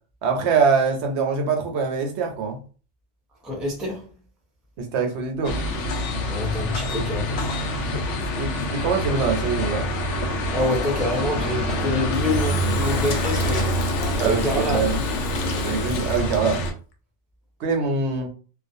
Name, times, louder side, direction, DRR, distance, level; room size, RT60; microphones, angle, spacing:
voice 1, 0.2-2.6 4.8-5.6 7.8-8.0 8.3-9.9 14.2-15.0 15.6-16.6 17.6-18.3, right 5 dB, 75° right, 0.9 m, -24 dB
voice 2, 3.4-4.0 6.3-7.4 10.5-13.8 14.2-14.8, left 1 dB, ahead, 0.4 m, -26 dB
sound 1, 5.4-16.7, equal, 85° left, 0.9 m, -26 dB
Engine / Drill, 12.1-16.7, left 4 dB, 60° left, 0.5 m, -32 dB
2.4 x 2.2 x 2.6 m
omnidirectional pair, 1.2 m